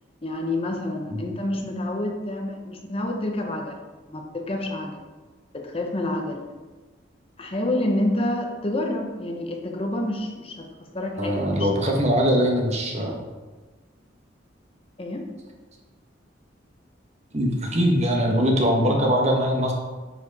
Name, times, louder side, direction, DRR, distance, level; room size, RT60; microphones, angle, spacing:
voice 1, 0.2-3.8 4.1-5.0 5.5-6.4 7.4-10.7 10.9-11.7 15.0-15.3 18.8-19.0, left 1 dB, 30° left, 2 dB, 0.9 m, -28 dB
voice 2, 11.2-13.1 17.3-19.7, equal, 35° right, 1 dB, 1.2 m, -22 dB
10.0 x 4.8 x 4.1 m, 1.3 s
head